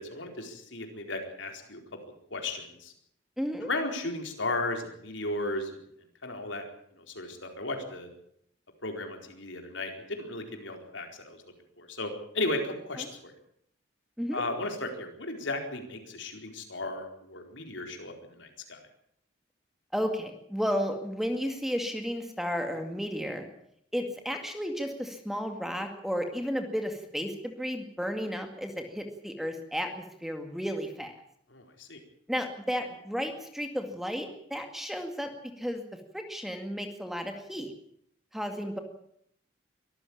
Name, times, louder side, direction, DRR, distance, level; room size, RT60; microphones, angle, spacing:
voice 1, 0.0-1.8 2.3-2.9 3.6-5.8 6.2-6.6 7.0-8.1 8.8-11.4 11.8-13.3 14.3-18.8 31.5-32.0, left 2 dB, 75° left, 4 dB, 4.4 m, -35 dB
voice 2, 3.4-3.7 13.0-13.1 14.2-14.4 19.9-23.5 23.9-31.1 32.3-35.3 35.6-35.8 36.1-37.7 38.3-38.8, equal, ahead, 5 dB, 2.1 m, -33 dB
23.5 x 14.0 x 8.8 m, 0.71 s
head